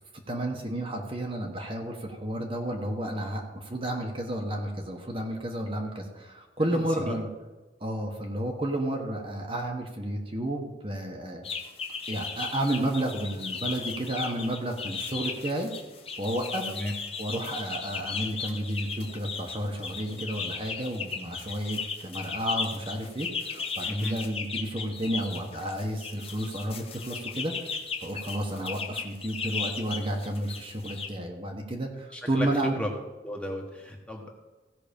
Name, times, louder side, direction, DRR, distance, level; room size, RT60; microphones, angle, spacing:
voice 1, 0.3-7.3 7.8-11.4 12.1-15.7 16.2-16.7 17.2-27.5 28.0-32.8, right 1 dB, 30° right, 2 dB, 1.2 m, -31 dB
voice 2, 6.6-7.2 16.6-16.9 23.8-24.2 32.1-32.9 33.2-34.4, equal, 5° left, 1 dB, 1.3 m, -34 dB
sound 1, 11.4-31.1, left 5 dB, 30° left, 1.1 m, -36 dB
16.0 x 5.9 x 5.2 m, 1.2 s
head